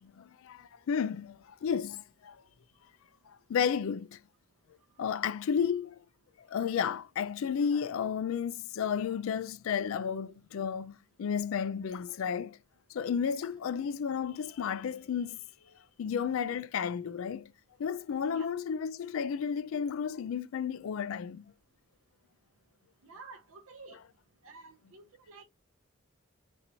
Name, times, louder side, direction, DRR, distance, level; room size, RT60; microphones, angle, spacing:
voice 1, 0.0-2.4 3.3-4.2 5.0-6.0 6.4-12.6 12.9-15.4 16.0-17.5 17.8-21.4, left 7 dB, 75° left, 0.3 m, -32 dB
voice 2, 5.0-5.5 13.6-13.8 18.3-18.5 23.0-24.0 24.4-25.4, right 4 dB, 80° right, 0.5 m, -52 dB
2.9 x 2.7 x 4.0 m
head